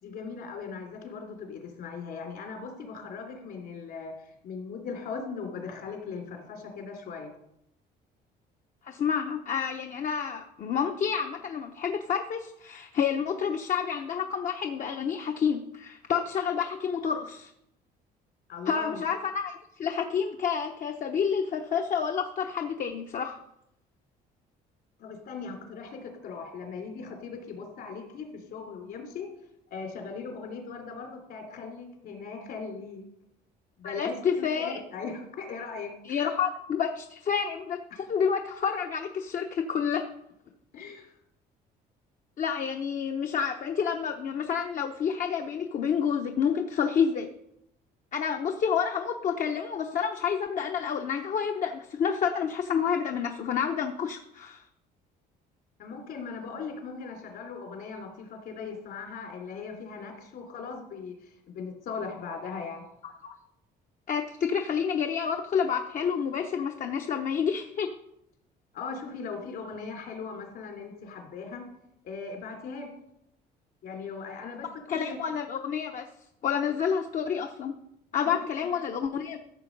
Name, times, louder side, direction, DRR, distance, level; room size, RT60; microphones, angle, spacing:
voice 1, 0.0-7.3 18.5-19.0 25.0-29.3 29.7-33.0 33.8-36.3 40.7-41.1 55.8-62.8 68.7-71.7 72.0-72.9 73.8-75.2 78.2-78.7, left 5 dB, 65° left, 3 dB, 3.3 m, -39 dB
voice 2, 8.8-17.5 18.7-23.4 33.8-34.8 36.0-40.0 42.4-47.3 48.1-54.6 63.0-63.4 64.1-67.9 74.9-76.1 76.4-77.7 78.1-79.4, left 7 dB, 50° left, 4 dB, 0.9 m, -29 dB
14.0 x 6.9 x 5.3 m, 0.80 s
cardioid pair, 110°, 17 cm